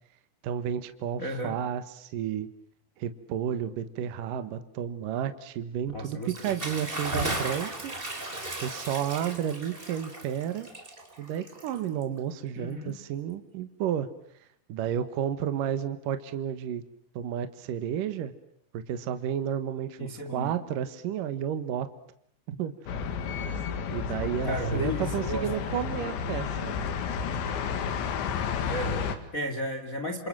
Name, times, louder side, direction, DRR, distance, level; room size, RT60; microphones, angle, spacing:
voice 1, 0.4-2.5 3.0-7.9 8.6-10.7 11.2-14.1 14.7-16.8 17.2-18.3 18.7-21.9 22.5-22.7 23.9-26.9, right 9 dB, 65° right, 9 dB, 2.4 m, -32 dB
voice 2, 1.2-1.6 5.9-6.6 12.5-13.0 20.0-20.5 24.4-25.7 28.6-30.3, equal, 30° left, 6 dB, 1.6 m, -34 dB
Bathtub (filling or washing) / Splash splatter, 6.2-12.2, right 2 dB, 15° right, 3.6 m, -35 dB
sound 1, 22.9-29.2, left 6 dB, 85° left, 4.3 m, -31 dB
28.0 x 27.5 x 7.6 m, 0.68 s
omnidirectional pair, 5.1 m